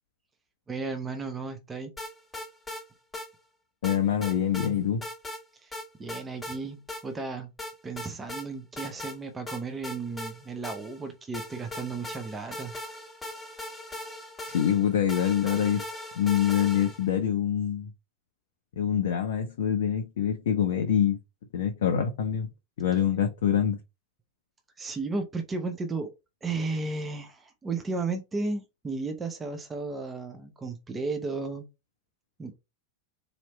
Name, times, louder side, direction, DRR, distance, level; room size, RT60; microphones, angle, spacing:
voice 1, 0.7-1.9 5.6-5.7 6.0-7.5 7.8-12.7 24.8-26.1 26.4-31.7 32.4-32.5, right 3 dB, 15° right, 0.8 m, -34 dB
sound 1, 2.0-2.8 3.1-3.3 3.8-4.7 5.0-5.4 5.7-6.6 6.9-7.0 7.6-8.4 8.8-9.2 9.5-11.0 11.3-17.1, left 1 dB, 5° left, 1.5 m, -39 dB
voice 2, 3.8-5.0 14.5-15.8 16.2-17.9 18.8-21.2 21.5-22.5 22.8-23.8, left 9 dB, 60° left, 0.6 m, -25 dB
4.2 x 3.0 x 3.1 m
figure-of-eight pair, 90°, 0 cm